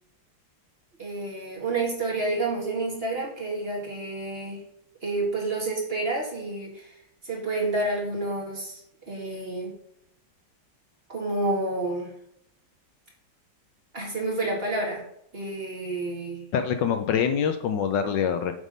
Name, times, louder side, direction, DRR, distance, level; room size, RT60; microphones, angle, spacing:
voice 1, 1.0-4.6 5.0-6.9 7.2-8.8 9.1-9.7 11.1-12.1 13.9-15.0 15.3-16.4, right 2 dB, 30° right, -2 dB, 1.9 m, -29 dB
voice 2, 16.5-18.5, left 7 dB, 75° left, 8 dB, 1.2 m, -25 dB
8.2 x 3.7 x 5.2 m, 0.72 s
omnidirectional pair, 2.1 m